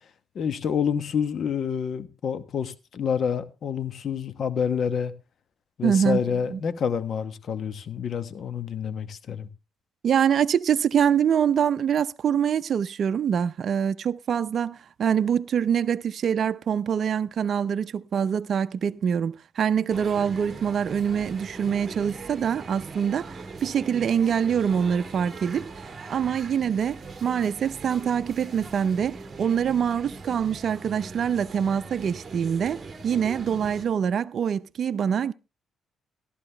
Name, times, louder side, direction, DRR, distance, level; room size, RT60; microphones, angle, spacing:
voice 1, 0.3-5.1 5.8-9.5, left 7 dB, 60° left, 1.1 m, -28 dB
voice 2, 5.8-6.6 10.0-23.4 23.6-25.7 26.1-35.3, right 8 dB, 55° right, 0.5 m, -25 dB
sound 1, 19.9-33.9, right 4 dB, 30° right, 1.7 m, -41 dB
14.0 x 11.5 x 3.4 m
cardioid pair, 90°, 0 cm